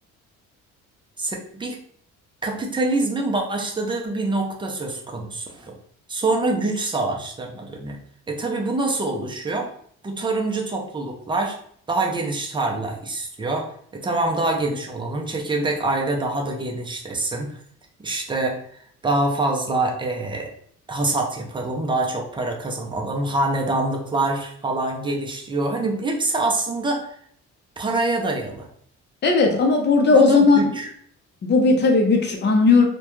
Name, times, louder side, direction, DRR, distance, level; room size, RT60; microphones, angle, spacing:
voice 1, 1.2-1.8 2.4-5.7 6.1-8.0 8.3-9.7 10.0-11.6 11.9-13.7 13.9-17.6 18.0-18.6 19.0-20.5 20.9-27.1 27.8-28.7 30.1-30.9, right 2 dB, 15° right, 1 dB, 0.4 m, -25 dB
voice 2, 29.2-30.6 31.4-32.8, left 4 dB, 35° left, 3 dB, 0.6 m, -16 dB
2.3 x 2.2 x 2.9 m, 0.63 s
cardioid pair, 115°, 30 cm